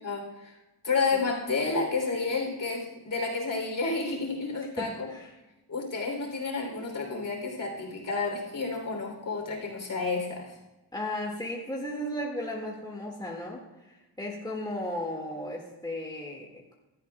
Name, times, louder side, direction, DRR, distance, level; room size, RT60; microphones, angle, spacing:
voice 1, 0.0-0.6 0.8-5.1 5.7-10.6, left 4 dB, 50° left, 1 dB, 3.3 m, -30 dB
voice 2, 4.8-5.3 10.9-16.7, left 1 dB, 10° left, -2 dB, 1.9 m, -35 dB
16.5 x 12.0 x 2.3 m, 1.1 s
wide cardioid pair, 120°, 40 cm